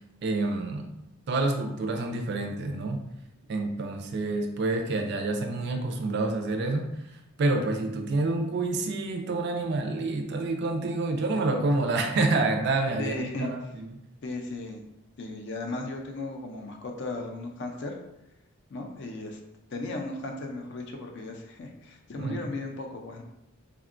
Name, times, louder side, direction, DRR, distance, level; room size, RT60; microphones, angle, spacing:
voice 1, 0.2-0.9 1.3-3.1 3.5-14.0 22.2-22.4, right 2 dB, 50° right, 5 dB, 0.3 m, -28 dB
voice 2, 13.0-13.5 14.2-14.8 15.2-18.0 18.7-19.4 19.7-23.2, left 2 dB, 55° left, 3 dB, 0.4 m, -36 dB
3.5 x 2.2 x 2.5 m, 0.85 s
head